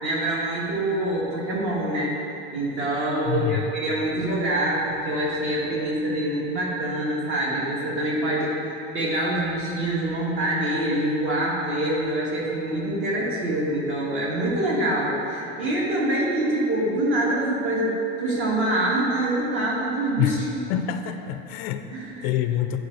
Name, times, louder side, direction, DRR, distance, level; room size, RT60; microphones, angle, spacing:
voice 1, 0.0-2.2 2.5-8.6 8.9-20.6 21.9-22.3, right 1 dB, 40° right, -4 dB, 1.8 m, -25 dB
voice 2, 3.3-3.7 20.2-20.4 20.7-21.8 22.2-22.8, left 11 dB, 80° left, 9 dB, 0.6 m, -26 dB
10.0 x 5.0 x 4.0 m, 2.9 s
cardioid pair, 165°, 30 cm